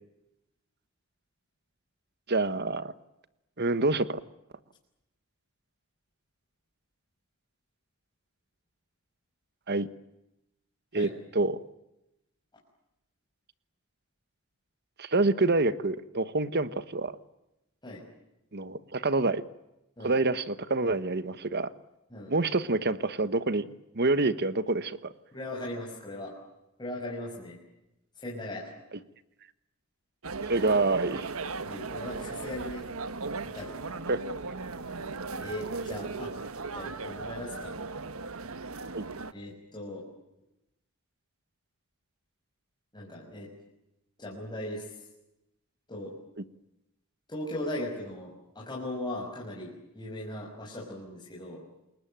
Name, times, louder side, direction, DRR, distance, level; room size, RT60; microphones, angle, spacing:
voice 1, 2.3-2.9 3.6-4.2 9.7-9.9 10.9-11.6 15.0-17.1 18.5-19.4 20.0-21.7 22.3-25.1 30.5-31.3 34.1-34.2 38.9-39.0, right 3 dB, 50° right, 14 dB, 1.3 m, -27 dB
voice 2, 25.3-26.3 26.8-27.6 28.1-28.7 31.6-32.8 33.4-33.7 35.4-36.3 36.7-37.7 39.3-40.1 42.9-43.5 44.2-44.9 45.9-46.1 47.3-51.6, left 1 dB, 20° left, -4 dB, 6.1 m, -38 dB
sound 1, 30.2-39.3, right 3 dB, 75° right, 1.3 m, -37 dB
29.0 x 21.5 x 8.9 m, 0.91 s
head